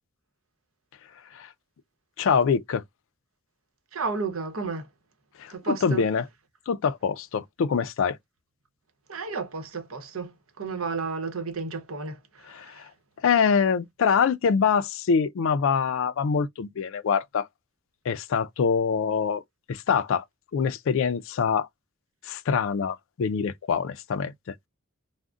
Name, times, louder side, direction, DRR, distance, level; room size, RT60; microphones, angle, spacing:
voice 1, 2.2-2.8 5.4-6.2 6.7-8.2 12.5-12.9 13.2-17.5 18.1-19.4 19.7-20.2 20.5-21.7 22.3-24.3, left 6 dB, 65° left, 0.4 m, -24 dB
voice 2, 3.9-4.9 5.5-6.0 9.1-12.9, right 4 dB, 75° right, 0.9 m, -32 dB
3.6 x 2.1 x 2.3 m
head